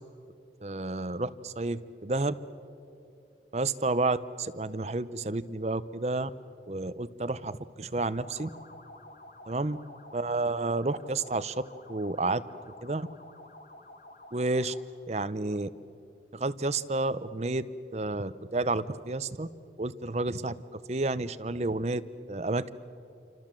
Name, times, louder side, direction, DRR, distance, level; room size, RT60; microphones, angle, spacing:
voice 1, 0.6-2.3 3.5-6.3 6.7-8.5 9.5-9.8 10.1-11.5 11.9-12.4 12.8-13.1 14.3-14.7 15.1-15.7 16.3-17.6 17.9-19.5 19.8-22.0 22.3-22.7, right 2 dB, 40° right, 13 dB, 0.7 m, -30 dB
sound 1, 8.1-14.9, left 1 dB, 45° left, 1.8 m, -50 dB
27.5 x 26.0 x 7.5 m, 2.7 s
head